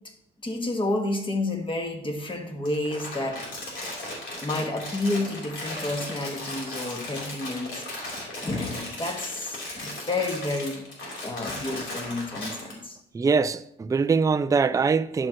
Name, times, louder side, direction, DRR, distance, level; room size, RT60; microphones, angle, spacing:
voice 1, 0.4-3.4 4.4-7.8 8.4-10.8 11.2-13.0, left 2 dB, 25° left, 1.7 m, -30 dB
Crumpling crinkling, 2.6-12.7, left 2 dB, 75° left, 3.6 m, -36 dB
voice 2, 13.1-15.3, right 5 dB, 15° right, 0.4 m, -23 dB
11.0 x 7.6 x 3.0 m
cardioid pair, 90°, 20 cm